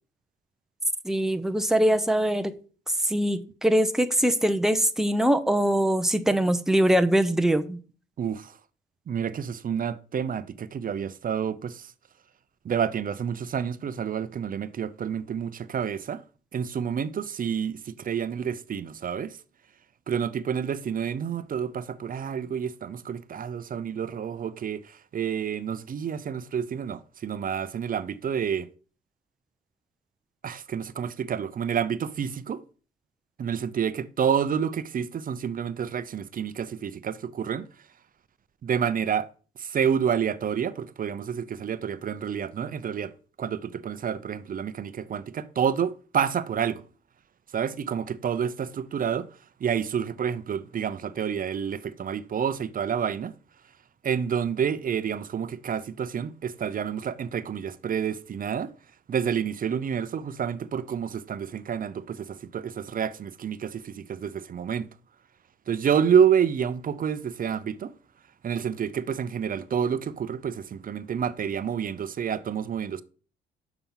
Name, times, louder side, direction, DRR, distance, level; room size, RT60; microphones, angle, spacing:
voice 1, 1.0-2.5 3.0-7.8, right 1 dB, ahead, 0.8 m, -23 dB
voice 2, 8.2-8.5 9.1-11.9 12.6-16.2 16.5-19.4 20.1-28.7 30.4-32.6 33.4-37.7 38.6-39.3 39.6-43.1 43.4-46.8 47.5-49.3 49.6-53.3 54.0-58.7 59.1-64.9 65.7-67.9 68.4-73.0, right 7 dB, 45° right, 0.7 m, -29 dB
6.9 x 6.0 x 5.7 m
cardioid pair, 90°, 20 cm